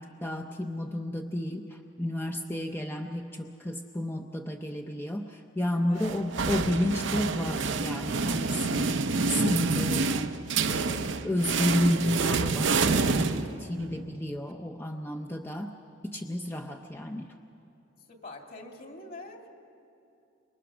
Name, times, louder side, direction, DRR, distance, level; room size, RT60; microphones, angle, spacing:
voice 1, 0.0-10.4 10.7-15.7 16.0-17.3, left 1 dB, 10° left, 3 dB, 0.6 m, -31 dB
sound 1, 6.0-13.9, right 4 dB, 70° right, 0.7 m, -28 dB
voice 2, 18.1-19.5, left 2 dB, 50° left, 3 dB, 2.4 m, -44 dB
26.0 x 23.0 x 6.1 m, 2.7 s
head